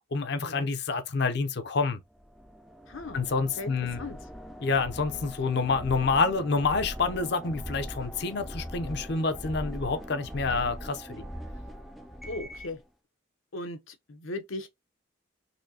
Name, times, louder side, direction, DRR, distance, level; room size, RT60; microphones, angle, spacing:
voice 1, 0.1-2.0 3.1-4.0 4.6-11.2, left 4 dB, 55° left, 0.6 m, -28 dB
sound 1, 2.2-12.8, equal, ahead, 0.3 m, -41 dB
voice 2, 2.9-3.2 3.6-3.7 4.0-4.2 10.5-10.6 12.3-12.8 13.5-14.7, left 2 dB, 85° left, 0.8 m, -38 dB
4.2 x 2.7 x 2.7 m
head